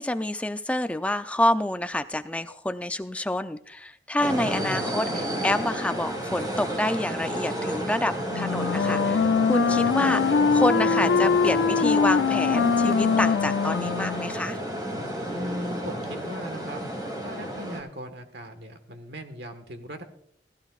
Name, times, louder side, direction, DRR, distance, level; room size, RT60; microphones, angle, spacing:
voice 1, 0.0-14.6, left 1 dB, 10° left, 9 dB, 0.5 m, -28 dB
sound 1, 4.2-17.8, equal, 25° right, 2.7 m, -31 dB
voice 2, 4.3-4.9 15.3-16.8 17.2-20.0, equal, 65° right, 8 dB, 1.5 m, -38 dB
Wind instrument woodwind instrument, 8.3-14.4, left 6 dB, 80° left, 0.3 m, -23 dB
16.0 x 16.0 x 2.4 m, 0.69 s
head